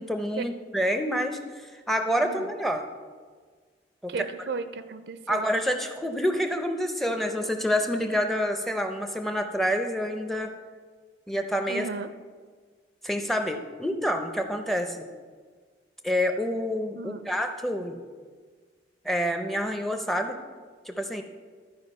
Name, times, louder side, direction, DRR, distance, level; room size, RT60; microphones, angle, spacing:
voice 1, 0.0-2.8 4.0-4.3 5.3-10.5 11.3-11.9 13.0-15.1 16.0-18.0 19.0-20.4 20.9-21.2, equal, ahead, 6 dB, 0.5 m, -28 dB
voice 2, 4.1-5.5 11.7-12.1 17.0-17.2, right 4 dB, 60° right, 11 dB, 0.4 m, -35 dB
12.0 x 4.7 x 5.3 m, 1.6 s
head